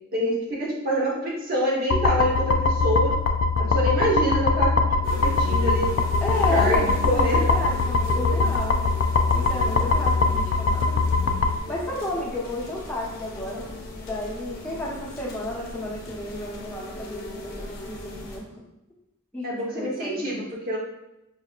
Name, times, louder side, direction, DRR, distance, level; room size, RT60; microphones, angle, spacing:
voice 1, 0.1-3.1 3.6-4.8 5.2-5.9 6.5-7.4 8.1-8.3 19.4-20.8, equal, 45° right, -5 dB, 1.1 m, -26 dB
sound 1, 1.9-11.6, left 3 dB, 65° left, 0.3 m, -22 dB
sound 2, 5.0-18.4, left 1 dB, 45° left, 0.8 m, -38 dB
voice 2, 6.2-8.8 9.3-11.0 11.7-13.7 14.1-18.5 19.3-20.4, left 1 dB, 5° left, -6 dB, 0.9 m, -32 dB
5.3 x 2.7 x 2.4 m, 0.91 s
head